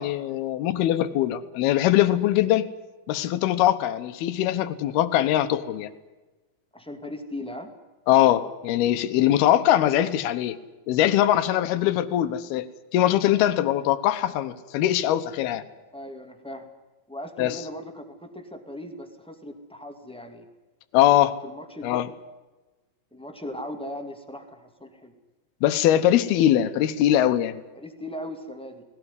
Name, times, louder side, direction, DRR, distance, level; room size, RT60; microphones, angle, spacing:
voice 1, 0.0-2.7 3.1-5.9 8.1-10.6 10.9-12.7 12.9-15.6 17.4-17.6 20.9-21.4 21.8-22.1 25.6-27.6, left 12 dB, 90° left, 11 dB, 3.0 m, -22 dB
voice 2, 6.7-7.7 15.9-16.7 17.1-20.5 21.4-21.9 23.1-25.1 27.7-28.8, left 1 dB, 5° left, 4 dB, 0.9 m, -38 dB
19.0 x 18.5 x 9.7 m, 1.2 s
omnidirectional pair, 4.3 m